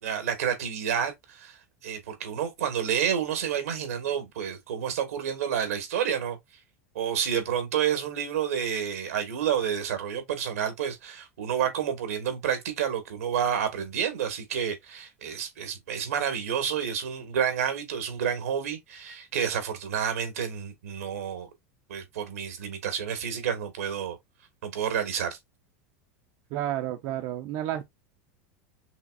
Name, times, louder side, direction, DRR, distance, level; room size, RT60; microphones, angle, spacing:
voice 1, 0.0-1.6 1.8-6.4 6.9-21.5 21.9-24.2 24.6-25.4, right 8 dB, 90° right, 1.7 m, -29 dB
voice 2, 26.5-27.9, right 12 dB, 55° right, 0.7 m, -31 dB
5.7 x 3.1 x 2.5 m
supercardioid pair, 115°, 8 cm